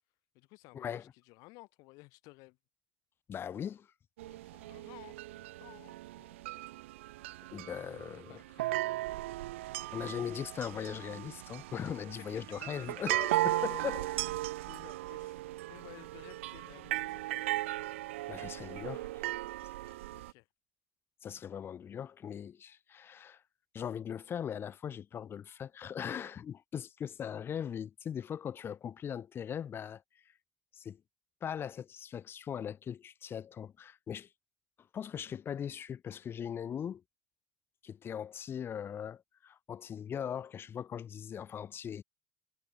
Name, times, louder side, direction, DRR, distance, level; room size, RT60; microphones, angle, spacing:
voice 1, 0.3-2.6 4.2-6.5 8.1-9.2 13.6-15.4 15.7-17.4 20.1-20.5, left 24 dB, 65° left, 3.8 m, -56 dB
voice 2, 3.3-3.9 7.5-8.4 9.9-14.1 18.3-19.2 19.9-20.0 21.2-23.4 23.7-30.0 30.7-31.0 31.4-34.3 34.9-37.0 37.8-42.0, left 8 dB, 35° left, 1.1 m, -40 dB
sound 1, 4.2-20.3, right 17 dB, 90° right, 1.0 m, -37 dB
supercardioid pair, 100°, 7 cm